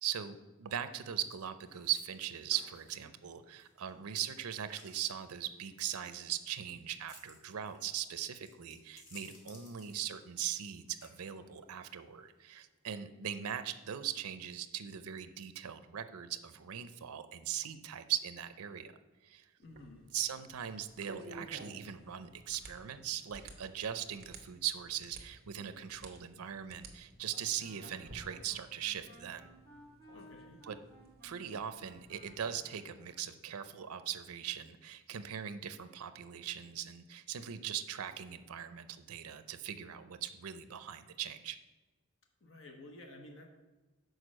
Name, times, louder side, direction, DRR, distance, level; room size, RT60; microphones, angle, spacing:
voice 1, 0.0-18.9 19.2-19.5 20.1-29.5 30.6-30.8 31.2-41.6, right 10 dB, 90° right, 11 dB, 0.5 m, -40 dB
sound 1, 1.7-13.0, left 2 dB, 80° left, 1.7 m, -61 dB
voice 2, 19.6-20.1 30.1-30.6 42.4-43.5, left 2 dB, 60° left, 3 dB, 1.0 m, -52 dB
sound 2, 19.6-32.4, right 2 dB, 45° right, 0.9 m, -55 dB
Wind instrument woodwind instrument, 27.5-33.3, equal, 10° left, 2.1 m, -59 dB
6.5 x 4.6 x 6.2 m, 1.1 s
head